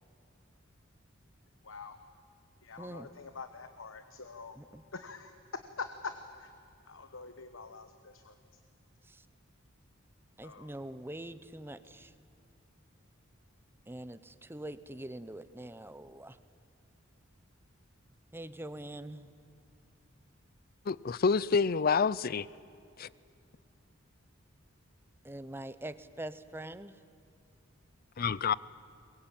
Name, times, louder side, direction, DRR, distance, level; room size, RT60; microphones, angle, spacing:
voice 1, 1.6-2.0 2.6-4.6 4.9-5.3 5.8-6.1 6.4-6.5 6.9-8.4 10.4-10.7, left 4 dB, 80° left, 1.1 m, -45 dB
voice 2, 10.4-12.1 13.9-16.4 18.3-19.3 25.2-27.0, right 1 dB, 10° right, 0.8 m, -43 dB
voice 3, 20.9-22.5 23.0-23.1 28.2-28.5, left 5 dB, 50° left, 0.5 m, -28 dB
22.5 x 21.5 x 8.9 m
head